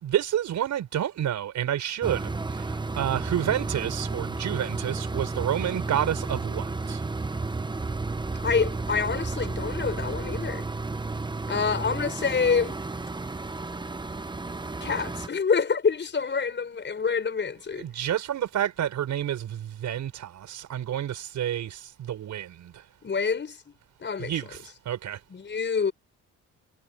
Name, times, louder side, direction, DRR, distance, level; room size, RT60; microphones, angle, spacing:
voice 1, 0.0-2.3 2.5-7.0 17.8-22.7 24.2-24.6 24.9-25.2, right 11 dB, 70° right, 5.3 m, -29 dB
sound 1, 2.0-15.3, right 3 dB, 15° right, 1.1 m, -32 dB
voice 2, 8.4-10.7 11.5-12.8 14.8-17.9 23.0-23.6 24.0-24.3 25.3-25.9, left 5 dB, 40° left, 5.8 m, -27 dB
cardioid pair, 90°, 30 cm